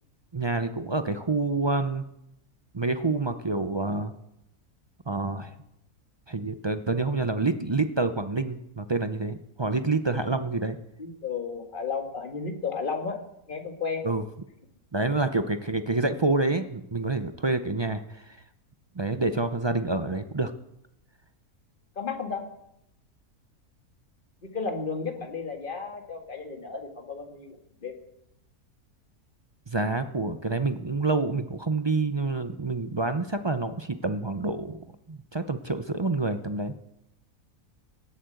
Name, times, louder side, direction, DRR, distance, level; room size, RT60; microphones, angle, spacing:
voice 1, 0.3-2.0 2.7-4.1 5.1-5.5 6.3-10.8 14.0-14.2 14.9-18.4 19.0-20.5 29.7-36.7, right 3 dB, 40° right, 9 dB, 0.4 m, -27 dB
voice 2, 11.0-13.2 13.5-14.0 22.0-22.5 24.4-27.6 27.8-27.9, left 5 dB, 35° left, 4 dB, 2.0 m, -33 dB
17.5 x 8.6 x 7.8 m, 0.82 s
omnidirectional pair, 1.6 m